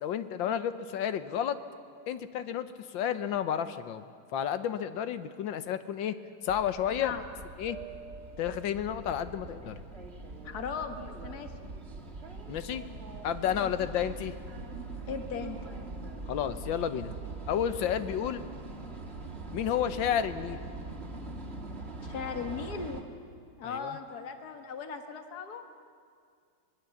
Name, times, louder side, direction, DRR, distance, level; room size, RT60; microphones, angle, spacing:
voice 1, 0.0-1.6 2.1-4.0 4.3-6.1 6.4-7.1 7.6-7.8 8.4-9.8 12.5-12.8 13.2-14.3 16.3-17.1 17.5-18.4 19.5-20.6 23.6-24.0, left 9 dB, 75° left, 12 dB, 1.6 m, -31 dB
sound 1, 6.5-23.0, right 3 dB, 35° right, 2.1 m, -42 dB
voice 2, 10.4-11.7 13.5-13.7 15.1-15.6 22.0-23.0 23.6-25.7, left 6 dB, 55° left, 7 dB, 1.9 m, -38 dB
25.5 x 20.5 x 7.1 m, 2.3 s
omnidirectional pair, 2.1 m